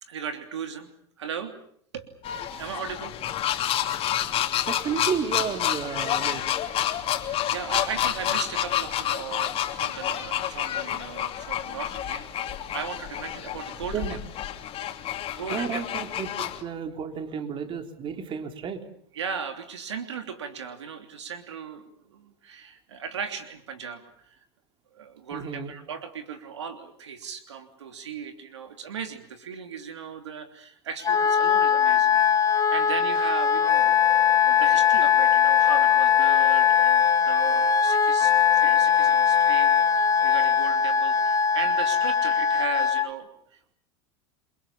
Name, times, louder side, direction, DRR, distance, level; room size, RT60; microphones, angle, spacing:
voice 1, 0.0-0.9 1.2-1.5 1.9-2.1 2.6-3.1 7.5-12.3 12.7-14.1 15.3-15.8 19.1-24.4 24.9-34.0 34.4-43.7, right 6 dB, 90° right, 7 dB, 3.2 m, -37 dB
sound 1, 2.2-16.6, left 11 dB, 40° left, 3.0 m, -29 dB
voice 2, 4.7-6.4 13.9-14.2 15.5-18.9 25.3-25.7, right 7 dB, 35° right, 6 dB, 3.6 m, -32 dB
Wind instrument woodwind instrument, 31.0-43.1, left 7 dB, 25° left, 1.7 m, -20 dB
29.0 x 23.0 x 7.2 m, 0.64 s
hypercardioid pair, 100°, 14 cm